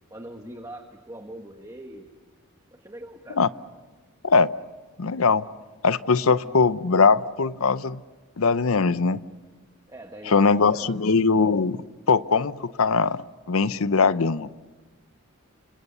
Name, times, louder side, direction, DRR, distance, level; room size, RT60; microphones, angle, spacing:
voice 1, 0.1-2.1 2.7-3.4 6.2-6.5 9.9-10.9, right 1 dB, 15° right, 4 dB, 1.4 m, -42 dB
voice 2, 5.0-5.4 5.8-8.0 8.4-9.2 10.3-11.8 12.1-13.2 13.5-14.5, left 4 dB, 75° left, 15 dB, 0.7 m, -21 dB
30.0 x 26.0 x 6.8 m, 1.3 s
head